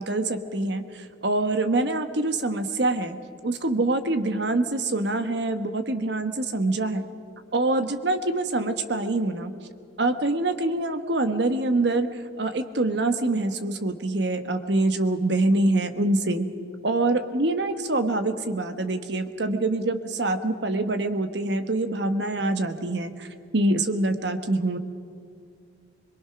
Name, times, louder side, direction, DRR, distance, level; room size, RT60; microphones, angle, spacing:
voice 1, 0.0-3.2 3.4-7.0 7.5-9.5 10.0-16.5 16.8-23.3 23.5-24.8, right 2 dB, 65° right, 8 dB, 1.2 m, -25 dB
22.5 x 22.0 x 6.0 m, 2.3 s
head